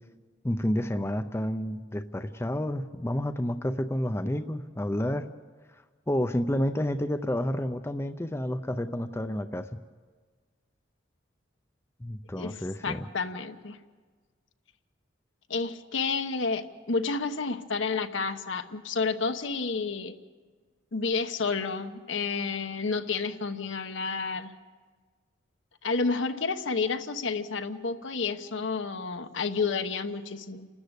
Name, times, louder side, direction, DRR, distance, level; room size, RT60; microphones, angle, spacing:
voice 1, 0.4-5.3 6.1-9.7 12.0-13.0, left 1 dB, 15° left, 8 dB, 0.5 m, -30 dB
voice 2, 12.8-13.8 15.5-20.2 20.9-24.5 25.8-30.7, left 4 dB, 75° left, 8 dB, 1.1 m, -30 dB
29.5 x 13.0 x 8.2 m, 1.5 s
head